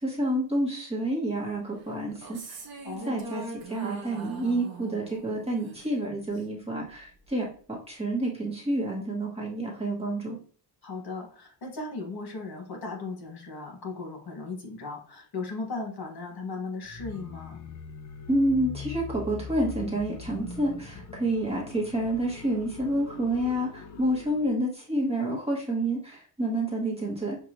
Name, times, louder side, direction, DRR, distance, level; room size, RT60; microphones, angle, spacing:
voice 1, 0.0-2.6 3.1-10.4 18.3-27.4, right 1 dB, 15° right, -3 dB, 1.2 m, -29 dB
sound 1, 2.1-6.6, right 3 dB, 60° right, 1.0 m, -41 dB
voice 2, 2.8-3.3 10.8-17.6, left 3 dB, 60° left, 1 dB, 1.8 m, -37 dB
sound 2, 16.8-24.5, left 5 dB, 45° left, 0.6 m, -42 dB
6.5 x 2.6 x 3.0 m, 0.43 s
wide cardioid pair, 165°, 42 cm